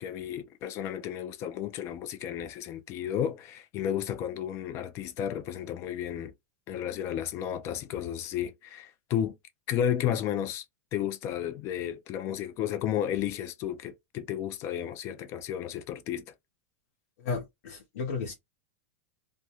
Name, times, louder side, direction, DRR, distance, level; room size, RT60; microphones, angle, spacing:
voice 1, 0.0-6.3 6.7-9.4 9.7-10.6 10.9-16.2, left 10 dB, 35° left, 0.4 m, -32 dB
voice 2, 17.2-18.3, left 5 dB, 75° left, 0.9 m, -34 dB
2.4 x 2.2 x 2.9 m
supercardioid pair, 145°, 8 cm